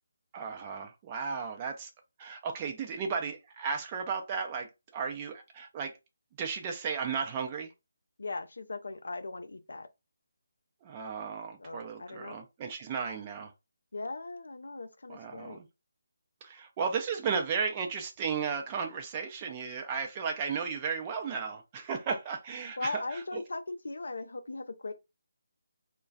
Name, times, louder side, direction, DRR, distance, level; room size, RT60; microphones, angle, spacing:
voice 1, 0.3-1.9 2.2-6.0 6.4-7.7 10.8-13.5 15.1-15.7 16.4-23.4, right 6 dB, 25° right, 0.5 m, -34 dB
voice 2, 8.2-9.9 11.6-12.4 13.9-15.6 22.8-24.9, left 3 dB, 70° left, 0.4 m, -39 dB
2.3 x 2.2 x 3.9 m
figure-of-eight pair, 150°, 0 cm